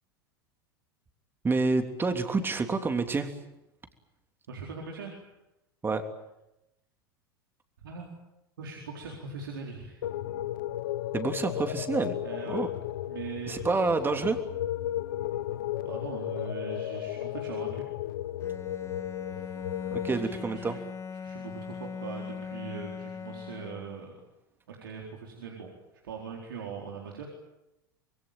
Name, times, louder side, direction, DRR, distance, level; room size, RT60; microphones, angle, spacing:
voice 1, 1.4-3.3 5.8-6.0 11.1-12.2 12.5-12.7 13.5-14.4 19.9-20.8, right 3 dB, 20° right, 7 dB, 3.2 m, -28 dB
voice 2, 4.5-5.3 7.8-8.1 8.6-10.0 12.2-12.6 13.0-14.2 15.8-17.9 19.3-19.6 20.2-20.7 21.2-24.1 24.7-25.7 26.0-27.2, right 5 dB, 70° right, 0 dB, 4.3 m, -41 dB
sound 1, 10.0-20.1, left 12 dB, 65° left, 1.2 m, -34 dB
Bowed string instrument, 18.4-24.2, left 6 dB, 25° left, 1.2 m, -40 dB
25.5 x 22.5 x 9.0 m, 0.92 s
figure-of-eight pair, 80°, 12 cm